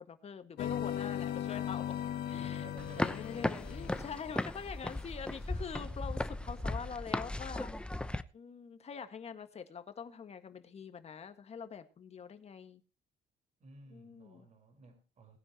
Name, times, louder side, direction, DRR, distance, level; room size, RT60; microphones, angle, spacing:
voice 1, 0.0-2.0 2.3-7.8 8.3-12.8 13.9-14.5, left 6 dB, 40° left, 1.8 m, -45 dB
sound 1, 0.6-4.8, left 10 dB, 65° left, 1.4 m, -38 dB
voice 2, 2.3-3.2 6.3-6.4 13.6-15.4, right 2 dB, 45° right, 4.8 m, -55 dB
sound 2, 2.8-8.2, left 1 dB, 5° left, 0.8 m, -37 dB
20.0 x 10.0 x 3.0 m
cardioid pair, 110°, 17 cm